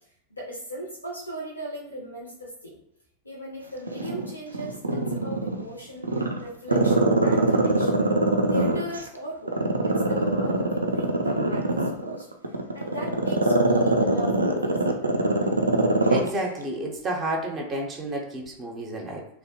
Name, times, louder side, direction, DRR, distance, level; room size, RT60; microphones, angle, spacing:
voice 1, 0.4-2.8 3.2-6.1 6.4-8.0 8.5-12.2 12.7-15.4, equal, 80° left, -3 dB, 0.5 m, -38 dB
Growling, 3.9-5.6 6.0-9.0 9.5-16.3 16.6-16.7, right 2 dB, 80° right, 0.3 m, -22 dB
voice 2, 16.1-19.3, right 1 dB, 25° right, 0 dB, 0.5 m, -30 dB
2.7 x 2.1 x 2.7 m, 0.77 s
figure-of-eight pair, 90°, 0 cm